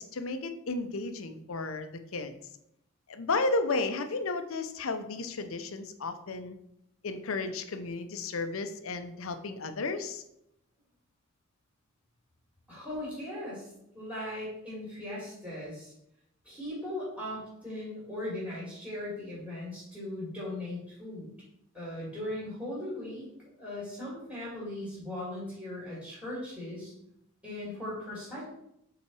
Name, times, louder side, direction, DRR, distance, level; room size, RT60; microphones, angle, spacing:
voice 1, 0.0-2.4 3.1-6.5 7.0-10.2, left 3 dB, 70° left, 9 dB, 0.6 m, -33 dB
voice 2, 12.7-13.7 13.9-15.9 16.4-21.3 21.7-23.3 23.6-26.9 27.4-28.4, left 1 dB, 5° right, -9 dB, 2.6 m, -38 dB
5.5 x 4.0 x 4.7 m, 0.76 s
head